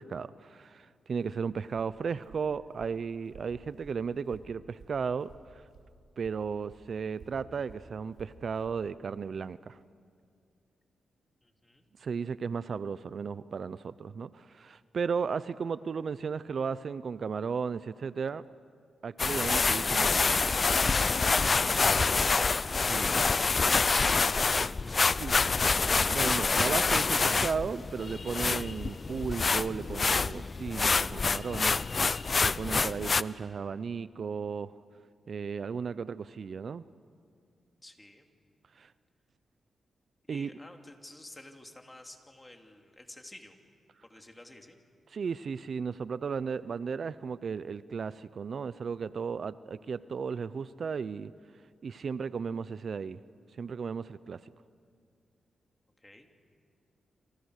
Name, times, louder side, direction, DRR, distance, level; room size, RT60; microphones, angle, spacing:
voice 1, 0.0-5.6 6.2-9.8 12.0-18.4 19.0-20.2 22.9-23.1 25.2-25.4 26.1-34.7 35.3-36.8 38.7-38.9 40.3-40.5 45.1-51.3 51.8-53.2 53.6-54.5, right 6 dB, 60° right, 16 dB, 0.6 m, -35 dB
Walk footsteps, 1.2-5.9 6.2-8.8, right 4 dB, 85° right, 3.6 m, -55 dB
voice 2, 11.4-11.8 37.8-38.3 40.3-43.6 44.0-44.8 56.0-56.3, left 1 dB, 15° left, 3 dB, 2.9 m, -51 dB
sound 1, 19.2-33.2, left 4 dB, 40° left, 0.5 m, -27 dB
28.0 x 27.5 x 6.5 m, 2.2 s
cardioid pair, 85°, 0 cm